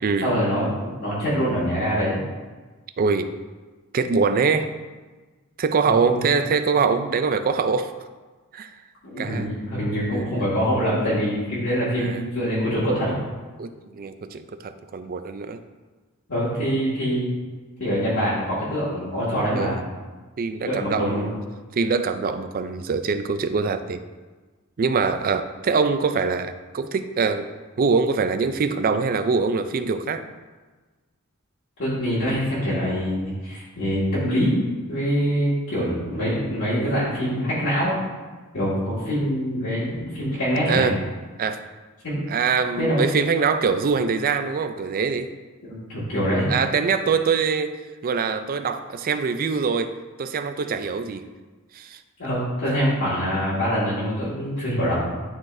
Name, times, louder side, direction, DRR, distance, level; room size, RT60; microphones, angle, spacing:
voice 1, 0.2-2.2 5.8-6.2 9.0-13.1 16.3-17.3 17.8-19.7 20.7-21.3 31.8-34.5 34.9-37.9 38.5-40.9 42.0-42.2 42.8-43.0 45.6-46.5 52.2-55.0, equal, 65° left, -11 dB, 2.0 m, -24 dB
voice 2, 3.0-3.3 3.9-4.7 5.6-7.9 8.5-8.7 9.2-9.5 12.0-12.2 13.6-15.6 19.6-19.8 20.4-21.4 21.8-24.0 24.8-27.5 27.8-30.2 40.7-41.0 41.4-41.6 42.3-45.3 46.5-47.7 48.0-49.9 50.2-51.2 51.7-52.0, right 5 dB, 40° right, 9 dB, 0.4 m, -23 dB
11.5 x 3.9 x 2.6 m, 1.3 s
head